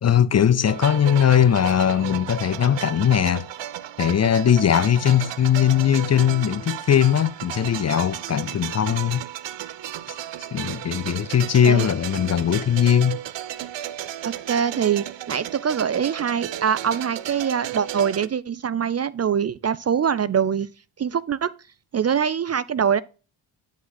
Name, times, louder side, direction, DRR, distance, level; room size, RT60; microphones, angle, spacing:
voice 1, 0.0-3.5 4.0-9.3 10.1-10.2 10.5-13.2, left 9 dB, 35° left, 0.5 m, -20 dB
sound 1, 0.7-18.3, right 12 dB, 60° right, 0.8 m, -34 dB
voice 2, 14.2-20.7 21.0-21.5 21.9-23.0, right 7 dB, 35° right, 0.5 m, -23 dB
9.7 x 5.3 x 4.0 m
supercardioid pair, 55°, 49 cm